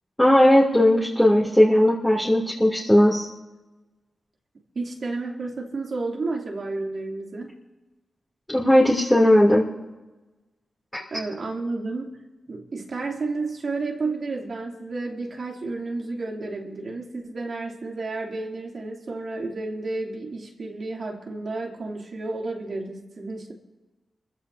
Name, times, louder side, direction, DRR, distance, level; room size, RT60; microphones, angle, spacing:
voice 1, 0.2-3.3 8.5-9.6, left 1 dB, 10° left, -5 dB, 3.0 m, -17 dB
voice 2, 4.7-7.5 11.1-12.2 12.5-23.5, right 3 dB, 60° right, -1 dB, 2.9 m, -31 dB
26.0 x 15.5 x 2.8 m, 1.1 s
cardioid pair, 65°, 0 cm